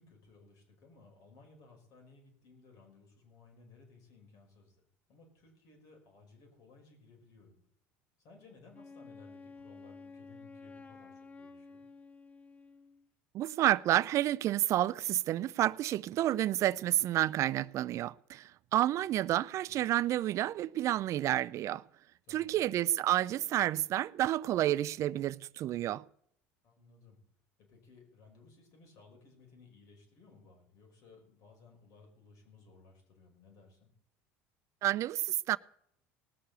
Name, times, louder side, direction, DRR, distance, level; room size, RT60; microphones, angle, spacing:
voice 1, 0.0-4.8 5.1-7.6 8.2-11.8 19.0-19.1 19.7-19.8 22.2-22.7 26.6-27.2 27.7-33.9, left 3 dB, 60° left, 5.6 m, -59 dB
Wind instrument woodwind instrument, 8.7-13.1, left 4 dB, 20° left, 1.0 m, -52 dB
voice 2, 13.3-21.8 22.3-26.0 34.8-35.6, right 13 dB, 55° right, 0.4 m, -30 dB
19.0 x 6.7 x 6.8 m
supercardioid pair, 90°, 6 cm